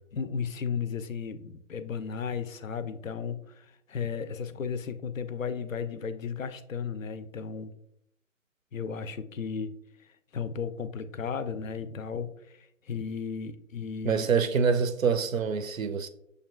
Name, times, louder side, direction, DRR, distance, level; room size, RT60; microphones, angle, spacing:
voice 1, 0.1-7.7 8.7-9.7 10.3-14.3, left 6 dB, 80° left, 12 dB, 0.5 m, -34 dB
voice 2, 14.0-16.1, right 6 dB, 85° right, 10 dB, 0.6 m, -26 dB
6.5 x 2.3 x 2.3 m, 0.76 s
figure-of-eight pair, 145°, 39 cm